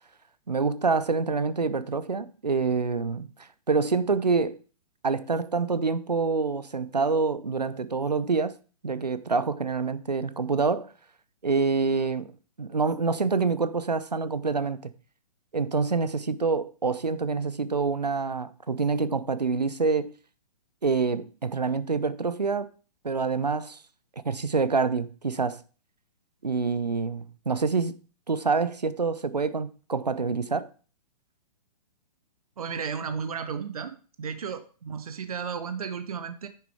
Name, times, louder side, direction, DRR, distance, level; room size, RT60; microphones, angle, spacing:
voice 1, 0.5-3.3 3.7-4.6 5.0-8.6 8.8-10.9 11.4-14.9 15.5-20.1 20.8-22.7 23.0-23.8 24.2-25.6 26.4-28.0 28.3-30.7, right 4 dB, 85° right, 0.8 m, -26 dB
voice 2, 32.6-36.5, right 6 dB, 60° right, 1.1 m, -34 dB
9.8 x 6.5 x 4.8 m
figure-of-eight pair, 120°, 21 cm